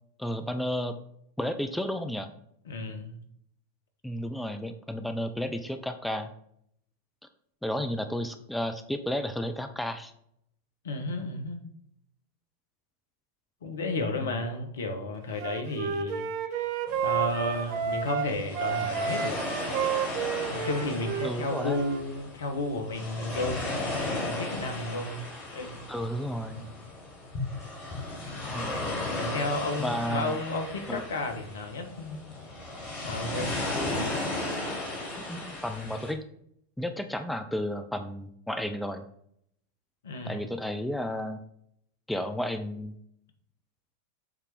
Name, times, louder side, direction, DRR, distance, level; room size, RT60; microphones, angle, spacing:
voice 1, 0.2-1.0 1.4-2.3 4.0-6.3 7.6-10.1 14.0-14.4 21.2-21.8 25.9-26.7 28.5-28.9 29.8-30.4 30.9-31.0 35.3-36.2 36.8-39.0 40.2-41.4 42.1-43.0, equal, 5° left, 7 dB, 0.5 m, -32 dB
voice 2, 2.7-3.2 10.8-11.6 13.6-16.2 16.5-16.7 17.0-19.4 20.5-23.8 24.2-25.3 25.5-25.8 29.1-32.2 33.0-33.6 40.0-40.4, left 2 dB, 65° left, 5 dB, 1.1 m, -32 dB
Wind instrument woodwind instrument, 15.4-18.3 18.5-22.0, right 7 dB, 40° right, 0.7 m, -31 dB
sound 1, 16.9-36.1, left 2 dB, 40° left, 2.8 m, -35 dB
7.4 x 3.3 x 5.0 m, 0.71 s
figure-of-eight pair, 90°, 0 cm